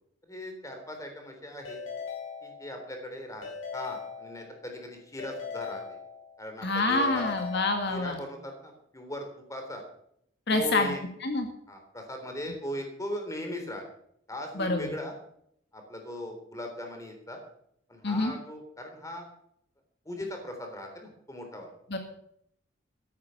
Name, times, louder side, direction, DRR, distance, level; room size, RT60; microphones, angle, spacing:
voice 1, 0.3-1.8 2.4-3.5 3.7-5.8 6.4-7.3 7.9-9.8 10.5-11.0 11.7-13.8 14.3-15.1 15.7-17.4 17.9-19.3 20.1-21.7, left 1 dB, 15° left, 4 dB, 3.6 m, -38 dB
Keyboard (musical) / Ringtone, 1.7-3.0 3.4-4.7 5.2-6.5 7.0-8.3, left 6 dB, 85° left, 5.0 m, -40 dB
voice 2, 6.6-8.2 10.5-10.9 11.2-11.5 14.6-14.9 18.0-18.3 21.9-22.0, left 2 dB, 55° left, 4 dB, 1.8 m, -27 dB
14.0 x 12.0 x 5.8 m, 0.70 s
head